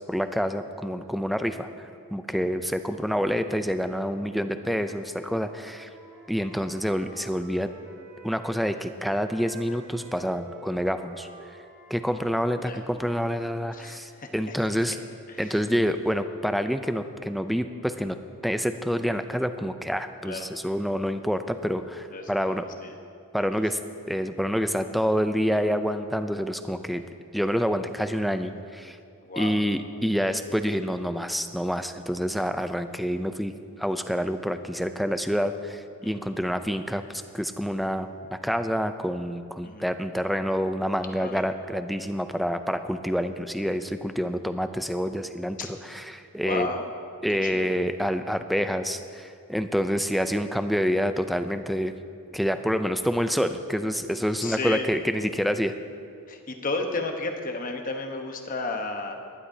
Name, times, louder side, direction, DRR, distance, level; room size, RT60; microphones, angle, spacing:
voice 1, 0.1-5.9 6.3-7.7 8.2-11.3 11.9-15.0 15.4-18.2 18.4-22.7 23.3-23.8 24.1-27.0 27.3-29.0 29.4-33.5 33.8-46.7 47.2-51.9 52.3-55.7, equal, ahead, 8 dB, 0.4 m, -27 dB
Wind instrument woodwind instrument, 4.3-8.7 9.0-13.9, right 1 dB, 60° right, 3.0 m, -49 dB
voice 2, 13.7-14.5 15.3-15.6 20.2-20.5 22.1-22.9 29.2-29.5 36.0-36.2 39.6-39.9 41.2-41.4 45.6-45.7 46.4-46.9 47.4-47.7 54.4-54.8 56.3-59.1, left 3 dB, 40° left, 4 dB, 1.1 m, -33 dB
19.0 x 11.5 x 2.8 m, 2.3 s
head